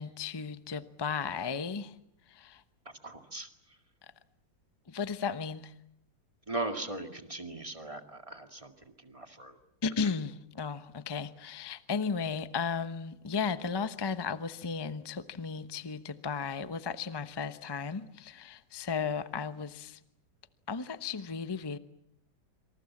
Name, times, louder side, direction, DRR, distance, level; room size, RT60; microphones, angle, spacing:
voice 1, 0.0-1.9 2.3-2.6 4.9-5.7 9.8-20.0 20.7-21.8, left 5 dB, 35° left, 0.4 m, -35 dB
voice 2, 2.9-3.5 6.5-9.6 10.0-10.1, right 2 dB, 15° right, 1.9 m, -39 dB
27.5 x 26.5 x 7.3 m
omnidirectional pair, 2.3 m